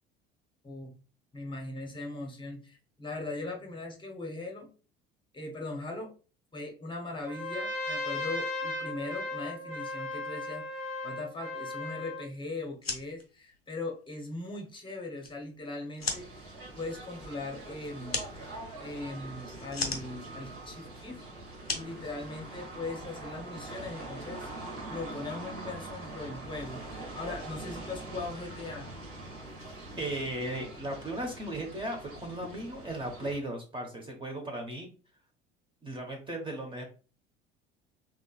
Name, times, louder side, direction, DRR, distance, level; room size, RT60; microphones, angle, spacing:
voice 1, 1.3-4.7 5.3-6.1 6.5-18.2 18.8-21.2 21.7-28.9, left 2 dB, 15° left, 1 dB, 0.9 m, -40 dB
Trumpet, 7.2-12.3, left 2 dB, 85° right, 1.5 m, -36 dB
sound 1, 12.7-22.9, left 4 dB, 90° left, 0.6 m, -40 dB
sound 2, 16.0-33.4, right 2 dB, 55° right, 1.4 m, -44 dB
voice 2, 30.0-34.9 35.8-36.8, right 1 dB, 15° right, 2 dB, 0.8 m, -36 dB
3.7 x 2.9 x 2.3 m, 0.35 s
figure-of-eight pair, 65°, 29 cm